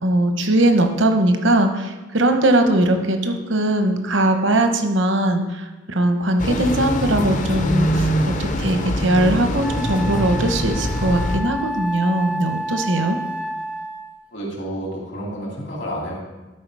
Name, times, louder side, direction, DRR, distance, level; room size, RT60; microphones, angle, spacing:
voice 1, 0.0-13.2, right 1 dB, 80° right, 6 dB, 0.9 m, -20 dB
sound 1, 6.4-11.4, equal, 40° left, 0.6 m, -23 dB
Wind instrument woodwind instrument, 9.6-14.3, equal, 5° right, 0.4 m, -30 dB
voice 2, 14.3-16.2, equal, 65° left, -3 dB, 2.6 m, -30 dB
12.0 x 4.7 x 4.7 m, 1.2 s
head